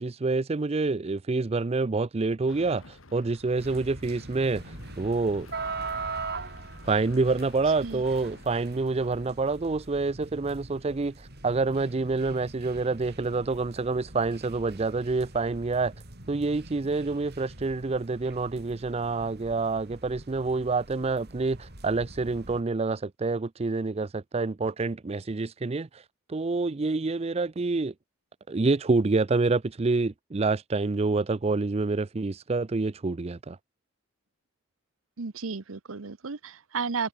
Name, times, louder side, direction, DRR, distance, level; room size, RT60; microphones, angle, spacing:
voice 1, 0.0-5.5 6.9-15.9 16.3-26.0 26.3-27.9 28.5-33.6, right 3 dB, 30° right, 0.5 m, -27 dB
sound 1, 2.5-10.0, left 2 dB, 80° left, 3.0 m, -52 dB
sound 2, 3.6-22.6, right 3 dB, 55° right, 5.1 m, -42 dB
voice 2, 35.2-37.1, right 5 dB, 85° right, 0.9 m, -33 dB
head